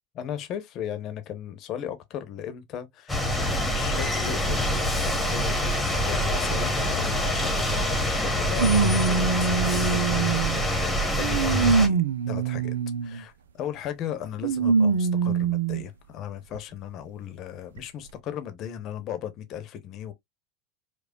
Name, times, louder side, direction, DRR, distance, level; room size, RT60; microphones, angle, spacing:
voice 1, 0.2-10.3 10.6-12.7 13.0-20.1, left 9 dB, 45° left, 0.9 m, -37 dB
sound 1, 3.1-11.9, equal, 10° left, 1.3 m, -25 dB
sound 2, 7.4-7.5 8.6-10.6 11.2-13.2 14.4-15.8 16.5-16.6 17.8-17.9, right 5 dB, 85° right, 0.5 m, -24 dB
4.9 x 2.3 x 2.3 m
hypercardioid pair, 90°, 0 cm